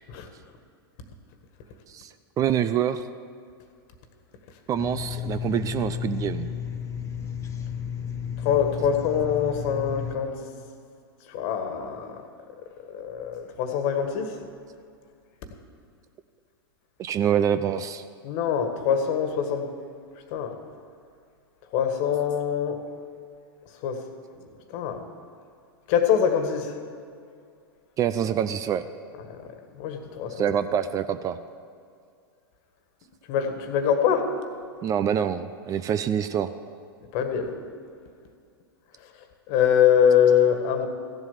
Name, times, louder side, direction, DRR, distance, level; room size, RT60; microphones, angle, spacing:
voice 1, 2.4-3.0 4.7-6.5 17.0-18.0 28.0-28.9 30.4-31.4 34.8-36.5, right 9 dB, 25° right, 12 dB, 0.5 m, -25 dB
sound 1, 4.7-10.1, left 8 dB, 25° left, 1.0 m, -33 dB
voice 2, 8.4-10.5 11.3-12.2 12.8-14.4 18.2-19.7 20.3-20.5 21.7-22.8 23.8-24.0 24.4-25.0 25.9-26.8 29.3-30.5 33.3-34.3 37.1-37.5 39.5-40.9, left 8 dB, 45° left, 6 dB, 1.6 m, -24 dB
15.0 x 8.0 x 7.3 m, 2.3 s
hypercardioid pair, 100°, 13 cm